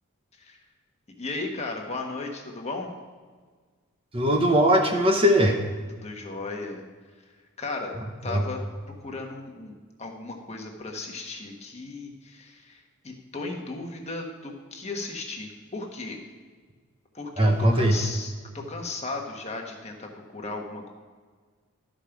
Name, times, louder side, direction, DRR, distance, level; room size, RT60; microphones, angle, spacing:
voice 1, 1.2-2.9 6.0-6.8 7.6-7.9 8.2-8.6 9.0-16.2 17.1-20.9, left 3 dB, 30° left, 1 dB, 1.3 m, -36 dB
voice 2, 4.1-5.6 8.3-8.4 17.4-17.9, equal, 25° right, 3 dB, 0.8 m, -20 dB
12.5 x 5.2 x 5.9 m, 1.5 s
head